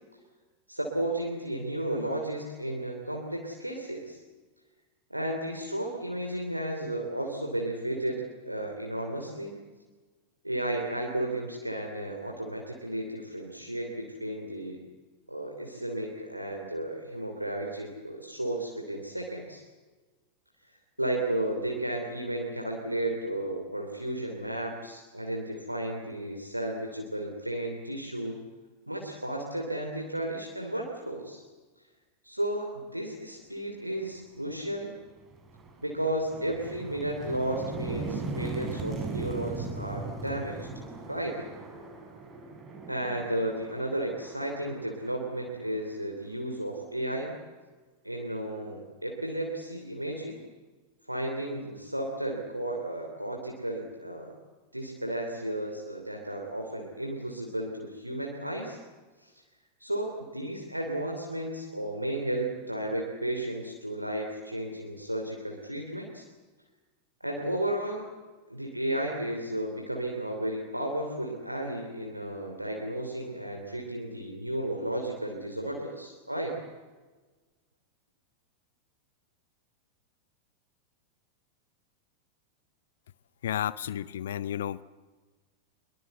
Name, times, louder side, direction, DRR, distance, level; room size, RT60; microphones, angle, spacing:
voice 1, 0.7-4.2 5.1-9.6 10.4-14.8 15.3-19.6 21.0-28.4 28.9-31.4 32.2-34.9 35.8-40.7 41.1-41.4 42.9-47.4 48.0-50.4 51.1-54.3 54.7-58.8 59.2-59.3 59.8-66.2 67.2-68.0 68.5-76.6, right 1 dB, 85° right, 1 dB, 3.0 m, -33 dB
sound 1, 34.5-34.7 35.1-45.9, right 3 dB, 20° right, 5.3 m, -39 dB
voice 2, 83.4-84.8, left 10 dB, 60° left, 19 dB, 0.7 m, -32 dB
24.0 x 22.5 x 8.0 m, 1.3 s
figure-of-eight pair, 90°, 0 cm